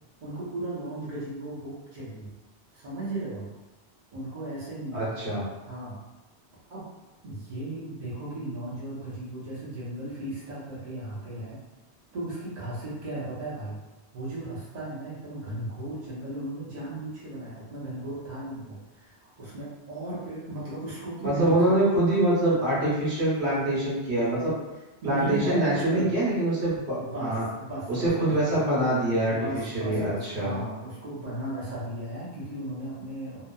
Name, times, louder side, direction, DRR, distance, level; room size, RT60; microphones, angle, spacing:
voice 1, 0.2-2.3 2.7-3.5 4.1-5.0 5.6-6.0 6.7-6.9 7.2-11.6 12.1-13.8 14.1-21.7 25.0-26.1 27.0-28.6 29.3-33.5, right 1 dB, 45° right, -8 dB, 0.8 m, -36 dB
voice 2, 4.9-5.4 21.2-24.5 25.0-27.4 27.9-29.3 29.7-30.5, right 1 dB, 70° right, -9 dB, 1.3 m, -25 dB
2.9 x 2.0 x 2.3 m, 1.1 s
omnidirectional pair, 1.1 m